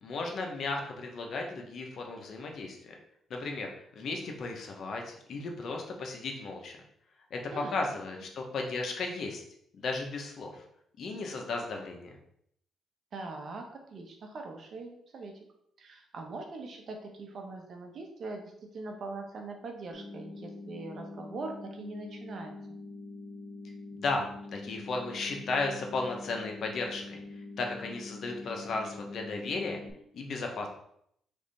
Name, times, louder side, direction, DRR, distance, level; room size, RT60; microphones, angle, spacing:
voice 1, 0.0-2.9 3.3-6.8 7.3-9.4 9.8-10.6 11.0-12.1 23.9-24.2 24.5-27.2 27.6-29.8 30.1-30.7, left 3 dB, 60° left, 2 dB, 0.9 m, -35 dB
voice 2, 13.1-15.4 15.8-22.8, right 3 dB, 55° right, 3 dB, 0.8 m, -42 dB
sound 1, 19.9-29.9, left 2 dB, 25° left, 1.7 m, -45 dB
3.5 x 3.2 x 4.1 m, 0.71 s
cardioid pair, 90°, 0 cm